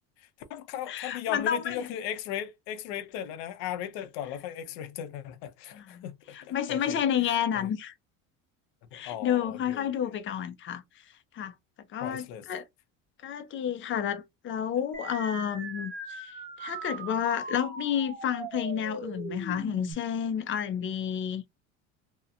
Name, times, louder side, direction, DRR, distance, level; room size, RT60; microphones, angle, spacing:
voice 1, 0.2-7.7 8.9-10.2 12.0-12.5, left 10 dB, 80° left, 0.6 m, -37 dB
voice 2, 0.9-1.8 5.7-6.0 6.3-7.9 8.9-10.8 11.3-11.5 11.9-12.6 13.2-21.4, left 9 dB, 35° left, 0.4 m, -30 dB
sound 1, 14.9-19.9, right 3 dB, 25° right, 1.1 m, -40 dB
2.8 x 2.1 x 2.4 m
cardioid pair, 125°, 36 cm